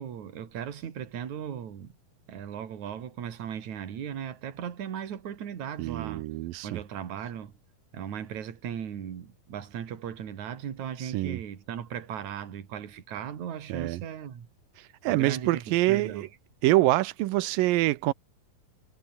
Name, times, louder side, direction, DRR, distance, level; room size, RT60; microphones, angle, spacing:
voice 1, 0.0-1.9 2.3-6.3 6.6-7.5 7.9-14.5 15.1-16.3, right 9 dB, 60° right, 3.6 m, -37 dB
voice 2, 5.8-6.8 11.0-11.4 13.7-14.0 14.8-16.3 16.6-18.1, right 17 dB, 80° right, 2.5 m, -26 dB
omnidirectional pair, 4.0 m